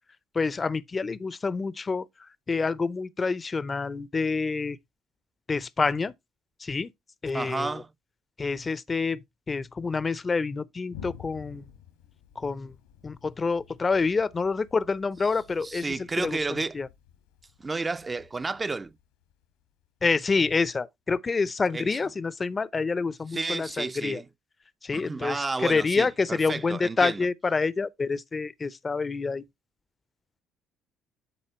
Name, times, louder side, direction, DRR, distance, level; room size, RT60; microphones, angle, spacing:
voice 1, 0.3-2.1 2.5-4.8 5.5-6.1 6.6-6.9 7.2-7.8 8.4-11.6 12.4-12.7 13.0-16.9 20.0-24.2 24.8-29.4, left 4 dB, 30° left, 0.5 m, -27 dB
voice 2, 7.3-7.9 15.6-16.8 17.6-18.9 21.7-21.9 23.3-24.3 24.9-27.2, right 3 dB, 25° right, 0.5 m, -31 dB
Thunder, 10.9-20.3, left 9 dB, 85° left, 1.5 m, -51 dB
9.9 x 4.1 x 3.0 m
hypercardioid pair, 60°, 0 cm